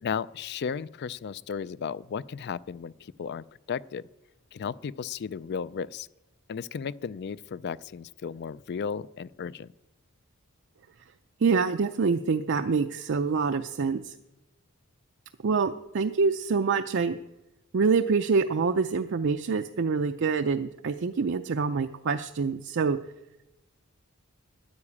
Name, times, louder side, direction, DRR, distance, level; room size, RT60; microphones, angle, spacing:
voice 1, 0.0-4.0 4.5-6.1 6.5-9.7, left 6 dB, 50° left, 20 dB, 0.4 m, -34 dB
voice 2, 11.4-14.1 15.4-17.2 17.7-23.0, right 5 dB, 55° right, 7 dB, 0.5 m, -26 dB
9.9 x 9.6 x 8.5 m, 0.94 s
head